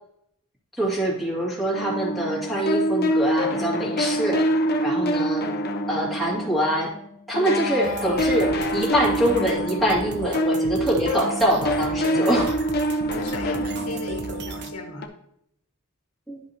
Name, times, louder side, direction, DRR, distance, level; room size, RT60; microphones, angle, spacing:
voice 1, 0.8-4.5 4.8-5.5 5.9-6.9 7.3-12.5 16.3-16.4, right 1 dB, ahead, -6 dB, 2.2 m, -24 dB
sound 1, 1.7-7.0 7.3-15.1, equal, 45° left, 0.8 m, -26 dB
sound 2, 7.8-14.7, right 4 dB, 50° right, 0.5 m, -36 dB
voice 2, 13.1-15.1, left 3 dB, 80° left, 2 dB, 1.5 m, -36 dB
10.5 x 5.3 x 2.8 m, 0.72 s
head